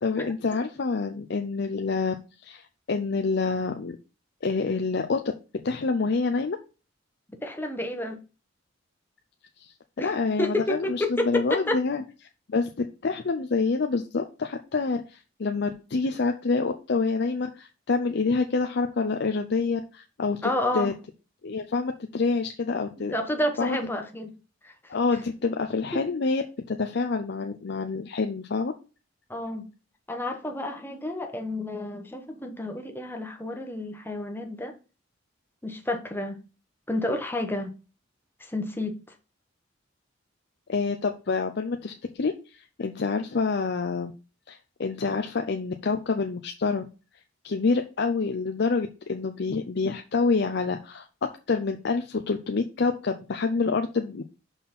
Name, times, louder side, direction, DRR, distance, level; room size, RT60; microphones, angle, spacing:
voice 1, 0.0-2.1 2.4-4.0 4.4-5.2 5.6-6.6 9.6-12.0 12.5-20.9 21.4-23.2 23.6-23.8 24.9-26.4 26.7-28.7 40.7-44.1 44.5-46.9 47.4-51.1 51.5-54.2, left 4 dB, 60° left, 0.5 m, -27 dB
voice 2, 7.4-8.2 10.0-10.1 10.4-11.8 20.4-20.9 23.0-24.3 24.6-24.9 25.9-26.0 29.3-29.7 30.1-34.7 35.6-36.4 36.9-37.7 38.4-39.0, left 1 dB, 10° left, 1.0 m, -30 dB
5.6 x 4.2 x 5.8 m
head